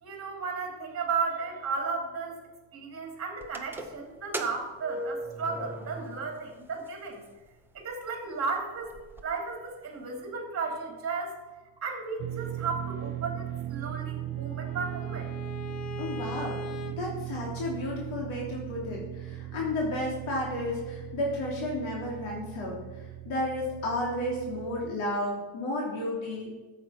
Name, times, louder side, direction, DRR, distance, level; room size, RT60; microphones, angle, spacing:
voice 1, 0.0-2.4 2.7-7.2 7.7-11.3 11.8-15.3, right 4 dB, 30° right, 1 dB, 3.2 m, -34 dB
sound 1, 3.4-6.6 6.9-7.0 7.8-7.9 8.3-8.4 8.6-9.2, right 1 dB, 5° right, 0.8 m, -38 dB
sound 2, 12.2-24.9, right 13 dB, 55° right, 0.7 m, -38 dB
Bowed string instrument, 13.8-17.0, left 5 dB, 35° left, 0.8 m, -42 dB
voice 2, 16.0-16.6 16.9-26.6, left 1 dB, 85° left, -2 dB, 3.4 m, -32 dB
14.5 x 7.8 x 5.9 m, 1.2 s
cardioid pair, 160°, 47 cm